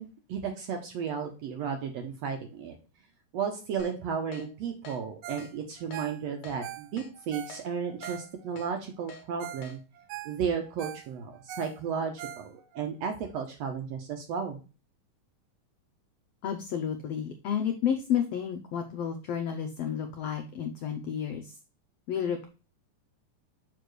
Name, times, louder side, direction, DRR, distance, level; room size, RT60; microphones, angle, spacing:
voice 1, 0.0-2.8 3.3-9.8 10.2-14.6, right 6 dB, 70° right, 4 dB, 1.6 m, -34 dB
Keyboard (musical), 3.8-3.9 4.3-4.5 4.8-5.0 5.4-5.5 5.9-6.0 6.4-6.6 7.0-7.1 7.5-7.6 8.0-8.2 8.6-8.7 9.1-9.2 9.6-9.8, left 2 dB, 60° left, 1.5 m, -46 dB
Ringtone, 5.2-5.5 5.8-8.7 9.1-9.2 9.4-9.7 10.0-12.8 13.3-13.4, right 10 dB, 90° right, 1.6 m, -43 dB
voice 2, 16.4-21.6 22.1-22.5, left 8 dB, 90° left, 5 dB, 1.4 m, -31 dB
6.8 x 4.9 x 3.1 m, 0.33 s
omnidirectional pair, 3.8 m